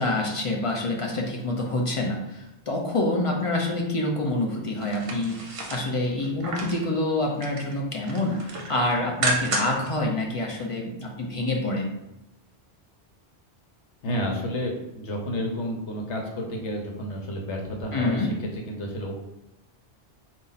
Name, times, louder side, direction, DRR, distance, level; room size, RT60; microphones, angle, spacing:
voice 1, 0.0-11.9 17.9-18.3, left 2 dB, 40° left, -1 dB, 0.5 m, -27 dB
sound 1, 4.8-6.9 7.2-7.7 8.1-9.9 10.3-10.4, right 2 dB, 40° right, 0.5 m, -31 dB
voice 2, 14.0-19.1, equal, 85° left, 1 dB, 1.1 m, -31 dB
4.1 x 2.5 x 3.9 m, 0.91 s
omnidirectional pair, 1.2 m